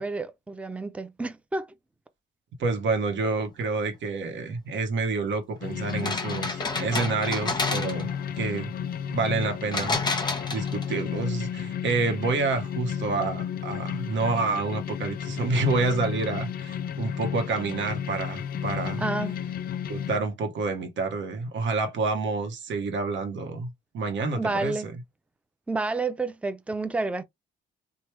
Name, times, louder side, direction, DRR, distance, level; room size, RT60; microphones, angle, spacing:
voice 1, 0.0-1.7 19.0-19.3 24.3-24.9 25.7-27.2, right 3 dB, 5° right, 0.5 m, -30 dB
voice 2, 2.6-8.1 8.4-8.7 9.1-19.0 19.9-24.9, right 3 dB, 70° right, 1.0 m, -28 dB
sound 1, 5.6-20.2, left 8 dB, 50° left, 0.4 m, -33 dB
sound 2, 5.9-8.2 9.7-11.0, left 3 dB, 20° left, 0.9 m, -30 dB
3.2 x 2.2 x 3.0 m
cardioid pair, 90°, 20 cm